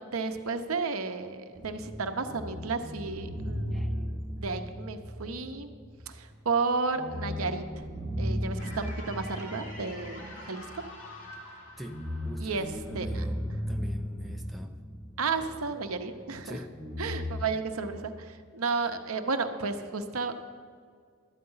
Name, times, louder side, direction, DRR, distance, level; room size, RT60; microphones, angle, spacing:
voice 1, 0.1-5.7 6.1-7.9 8.2-10.8 12.4-13.2 15.2-16.6 17.0-20.3, right 4 dB, 75° right, 7 dB, 0.8 m, -33 dB
sound 1, 1.5-6.2 6.5-6.6 6.9-11.2 11.7-16.0 16.7-17.4, equal, 20° left, 1.5 m, -36 dB
sound 2, 8.6-13.6, left 1 dB, 55° left, 2.3 m, -47 dB
voice 2, 11.8-14.8 16.4-16.7, equal, ahead, 2 dB, 0.6 m, -44 dB
12.5 x 8.8 x 5.5 m, 2.1 s
head